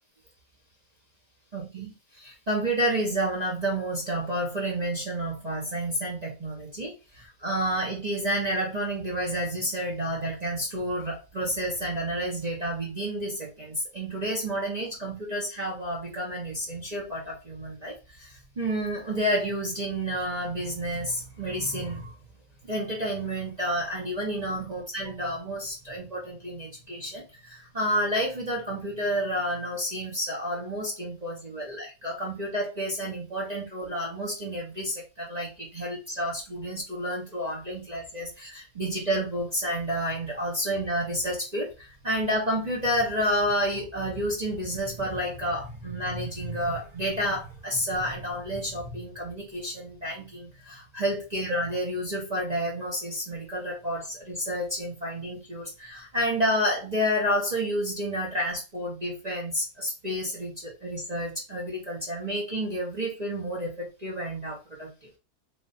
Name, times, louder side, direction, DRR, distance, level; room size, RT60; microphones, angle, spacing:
voice 1, 1.5-22.1 22.6-65.2, equal, 30° right, -4 dB, 0.9 m, -30 dB
3.5 x 2.6 x 3.9 m, 0.29 s
omnidirectional pair, 1.7 m